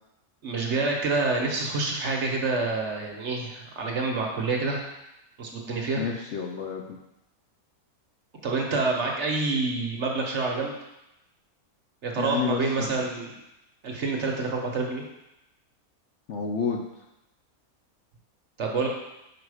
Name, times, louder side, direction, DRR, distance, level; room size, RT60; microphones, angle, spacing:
voice 1, 0.4-4.9 5.4-6.0 8.4-10.7 12.0-13.4 13.8-15.0 18.6-18.9, right 3 dB, 55° right, 0 dB, 1.1 m, -27 dB
voice 2, 6.0-7.0 12.2-12.9 16.3-17.0, left 6 dB, 65° left, 1 dB, 0.8 m, -30 dB
5.0 x 5.0 x 4.8 m, 0.89 s
omnidirectional pair, 1.6 m